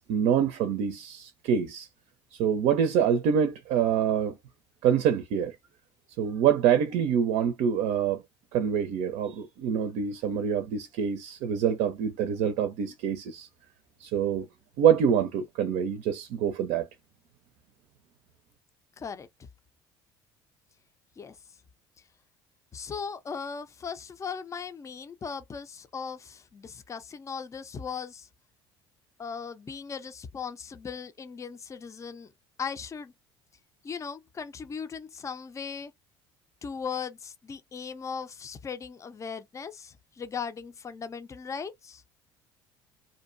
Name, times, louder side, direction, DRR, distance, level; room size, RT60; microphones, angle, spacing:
voice 1, 0.1-1.9 2.3-4.4 4.8-5.6 6.2-8.2 8.5-13.5 14.0-14.5 14.8-16.9, right 8 dB, 65° right, 0.5 m, -26 dB
voice 2, 19.0-19.3 21.2-21.4 22.7-28.3 29.2-32.3 32.6-33.1 33.8-35.9 36.6-42.0, left 6 dB, 25° left, 0.5 m, -38 dB
2.7 x 2.2 x 2.5 m
hypercardioid pair, 70°, 12 cm